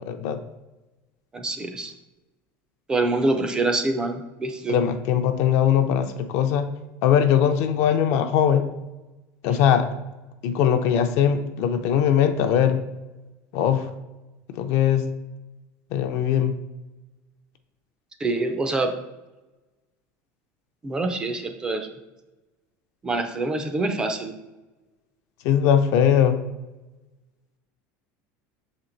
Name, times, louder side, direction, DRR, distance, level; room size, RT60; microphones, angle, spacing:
voice 1, 0.1-0.4 4.7-6.7 7.0-8.6 9.4-9.9 10.4-12.8 13.5-13.9 14.5-15.0 15.9-16.5 25.4-26.4, left 9 dB, 45° left, 8 dB, 0.5 m, -20 dB
voice 2, 1.3-1.9 2.9-4.8 18.2-18.9 20.8-21.9 23.0-24.3, right 2 dB, 10° right, 6 dB, 0.4 m, -25 dB
6.3 x 4.3 x 3.8 m, 1.1 s
cardioid pair, 180°, 7 cm